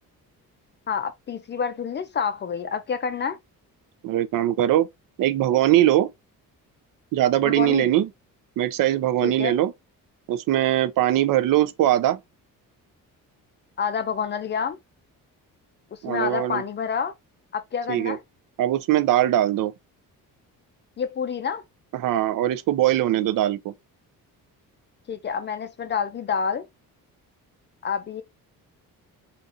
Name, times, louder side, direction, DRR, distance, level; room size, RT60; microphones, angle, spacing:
voice 1, 0.9-3.4 7.4-7.9 9.2-9.5 13.8-14.8 16.1-17.1 17.5-18.2 21.0-21.6 25.1-26.7 27.8-28.2, left 6 dB, 30° left, 0.4 m, -28 dB
voice 2, 4.0-4.9 5.2-6.1 7.1-8.1 8.6-9.7 10.3-12.2 16.0-16.6 17.9-18.2 18.6-19.7 21.9-23.7, right 13 dB, 65° right, 0.5 m, -21 dB
4.0 x 2.5 x 2.5 m
cardioid pair, 140°, 35 cm